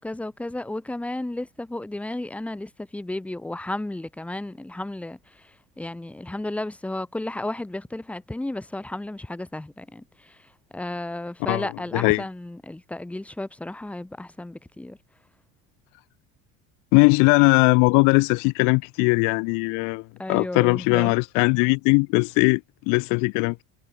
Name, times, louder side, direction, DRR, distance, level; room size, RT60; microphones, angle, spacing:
voice 1, 0.0-5.2 5.8-10.4 10.7-15.0 20.2-21.2, left 1 dB, 5° left, 2.2 m, -33 dB
voice 2, 11.5-12.2 16.9-22.6 22.9-23.6, left 32 dB, 65° left, 1.4 m, -20 dB
cardioid pair, 170°, 32 cm